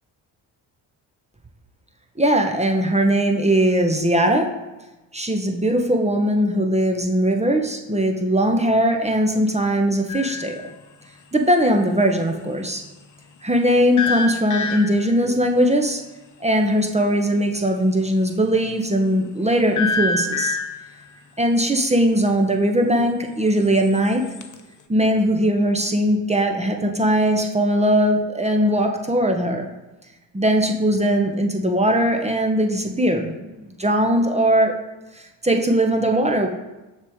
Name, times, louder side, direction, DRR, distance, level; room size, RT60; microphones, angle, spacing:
voice 1, 2.2-4.5 5.1-10.6 11.3-12.8 13.4-16.0 16.4-20.6 21.4-24.2 24.9-29.7 30.3-34.7 35.4-36.5, equal, 15° right, 3 dB, 0.9 m, -20 dB
sound 1, 10.1-10.6 14.0-15.2 19.8-20.9 23.6-24.6, left 3 dB, 40° left, 0.8 m, -26 dB
6.5 x 4.9 x 3.6 m, 1.1 s
supercardioid pair, 55°, 49 cm